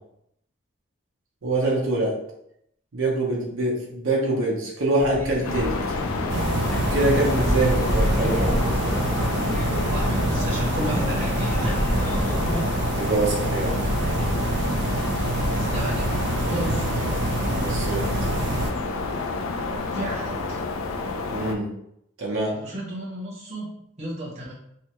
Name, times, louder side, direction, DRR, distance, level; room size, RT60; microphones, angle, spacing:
voice 1, 1.4-2.1 2.9-5.8 6.9-8.5 13.0-13.8 17.6-18.1 21.3-21.7 22.2-22.6, right 2 dB, 80° right, -3 dB, 0.8 m, -24 dB
sound 1, 5.0-12.6, equal, 10° left, 0.4 m, -29 dB
sound 2, 5.4-21.6, left 3 dB, 85° left, 0.4 m, -29 dB
sound 3, 6.3-18.7, right 2 dB, 55° right, 0.4 m, -26 dB
voice 2, 9.9-11.8 15.5-16.1 16.4-16.9 19.9-20.6 22.5-24.5, right 1 dB, 35° right, -5 dB, 0.8 m, -33 dB
3.2 x 2.1 x 3.0 m, 0.76 s
head